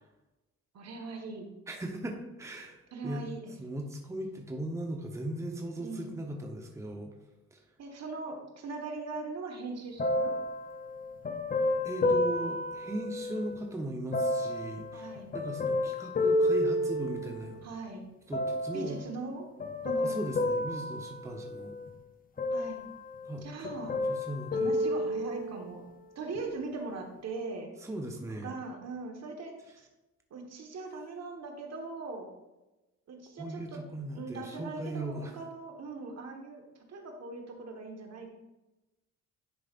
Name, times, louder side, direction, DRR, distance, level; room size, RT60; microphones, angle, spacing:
voice 1, 0.7-1.5 2.9-3.5 5.8-6.1 7.8-10.4 14.9-15.3 17.6-18.0 18.7-19.5 19.8-20.2 22.5-22.8 23.4-24.0 24.5-25.8 26.1-27.7 28.4-29.9 30.3-32.3 33.1-33.8 34.1-36.6 36.9-38.3, right 3 dB, 60° right, 2 dB, 1.4 m, -40 dB
voice 2, 1.7-2.8 3.0-3.2 3.6-7.1 7.5-7.6 11.8-17.6 18.3-19.0 20.0-21.8 23.2-24.7 27.8-28.5 33.4-35.3, right 1 dB, 10° right, 2 dB, 0.9 m, -38 dB
sound 1, 10.0-13.6 14.1-17.6 18.3-19.0 19.6-21.9 22.4-23.4 23.6-25.7 26.3-26.4, left 1 dB, 30° left, 0.7 m, -31 dB
10.5 x 4.9 x 2.5 m, 1.0 s
cardioid pair, 90°, 30 cm